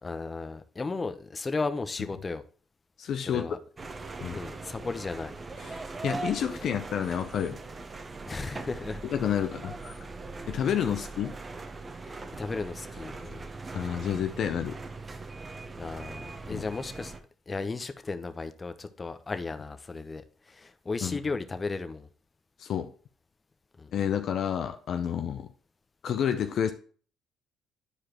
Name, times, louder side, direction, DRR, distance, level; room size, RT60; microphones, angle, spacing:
voice 1, 0.0-2.4 3.3-3.6 4.3-5.3 8.3-9.0 12.0-13.5 15.8-17.1 17.5-20.2 20.5-22.1 23.8-23.9, left 3 dB, 30° left, 0.8 m, -35 dB
voice 2, 3.0-3.6 4.2-4.4 5.6-7.6 9.1-10.0 10.5-11.3 13.7-14.8 16.5-16.6 21.0-21.2 22.6-22.9 23.9-25.5 26.0-26.7, left 8 dB, 60° left, 0.6 m, -30 dB
sound 1, 3.8-17.2, right 3 dB, 35° right, 1.0 m, -40 dB
9.8 x 4.8 x 3.0 m
hypercardioid pair, 60°, 0 cm